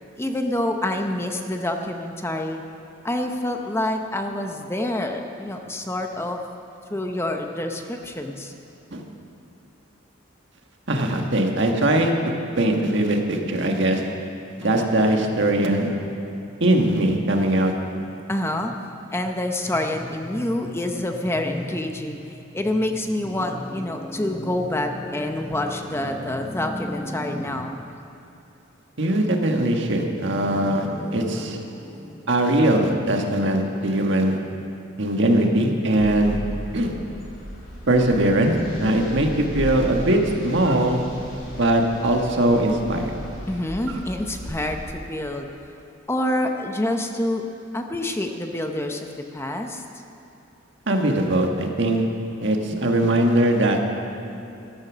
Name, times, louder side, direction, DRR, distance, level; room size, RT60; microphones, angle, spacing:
voice 1, 0.2-2.6 3.0-6.4 6.9-8.5 14.6-15.3 18.3-18.8 19.1-22.2 22.5-27.8 30.1-32.3 43.5-45.5 46.1-47.4 47.7-49.8 52.7-53.1, left 1 dB, 15° left, 4 dB, 0.7 m, -27 dB
voice 2, 10.9-12.1 12.6-14.0 14.6-15.9 16.6-17.7 29.0-30.9 31.1-31.6 32.3-34.4 35.0-36.4 36.7-36.9 37.9-38.5 38.8-41.0 41.6-43.1 50.9-52.0 52.4-53.8, right 1 dB, 65° right, 2 dB, 1.6 m, -20 dB
sound 1, 36.0-44.9, equal, 80° left, 3.3 m, -36 dB
13.5 x 13.5 x 6.2 m, 2.8 s
head